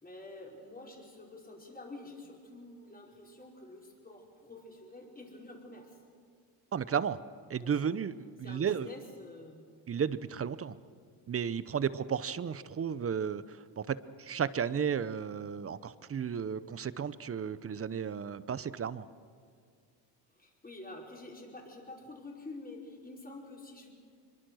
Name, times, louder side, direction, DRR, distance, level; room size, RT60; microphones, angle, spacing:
voice 1, 0.0-6.0 7.6-8.0 8.4-9.6 20.3-23.9, left 2 dB, 20° left, -1 dB, 5.1 m, -48 dB
voice 2, 6.7-7.2 7.5-8.1 8.4-8.9 9.9-10.8 11.3-19.1, right 7 dB, 30° right, 16 dB, 0.7 m, -33 dB
23.5 x 23.0 x 6.3 m, 2.1 s
cardioid pair, 90°, 46 cm